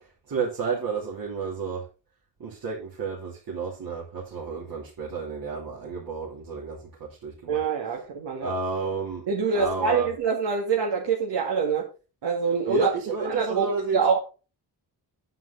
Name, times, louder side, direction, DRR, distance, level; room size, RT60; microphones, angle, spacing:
voice 1, 0.3-1.8 2.4-7.6 8.4-9.2 9.5-10.1 12.7-14.0, right 4 dB, 55° right, -4 dB, 3.1 m, -31 dB
voice 2, 7.5-8.5 9.3-11.9 12.2-12.9 13.2-14.2, right 5 dB, 75° right, -1 dB, 2.1 m, -25 dB
9.1 x 8.3 x 3.9 m, 0.32 s
cardioid pair, 120°, 41 cm